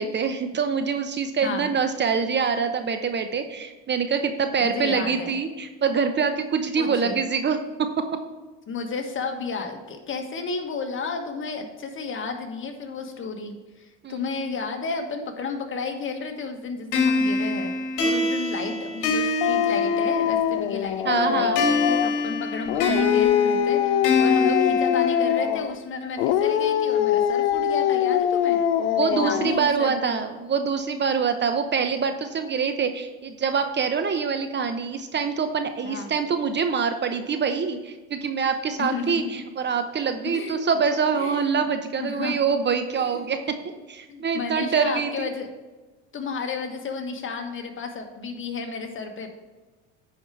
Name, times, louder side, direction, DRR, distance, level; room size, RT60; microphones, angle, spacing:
voice 1, 0.0-8.0 14.0-14.2 21.0-21.6 28.9-43.6 43.9-45.3, right 6 dB, 30° right, 8 dB, 0.8 m, -25 dB
voice 2, 1.4-1.7 4.6-5.3 6.8-7.2 8.7-17.7 18.0-28.6 29.0-30.1 35.8-36.1 38.8-39.4 40.3-40.6 41.1-41.6 42.0-42.4 42.9-43.3 44.1-45.5 46.1-49.3, left 4 dB, 35° left, 4 dB, 1.5 m, -32 dB
sound 1, 16.9-20.5 21.6-25.6, left 2 dB, 60° left, 2.0 m, -25 dB
Dog, 19.4-22.2 22.7-25.8 26.2-29.7, left 9 dB, 85° left, 0.6 m, -23 dB
9.9 x 4.9 x 4.7 m, 1.2 s
supercardioid pair, 95°, 34 cm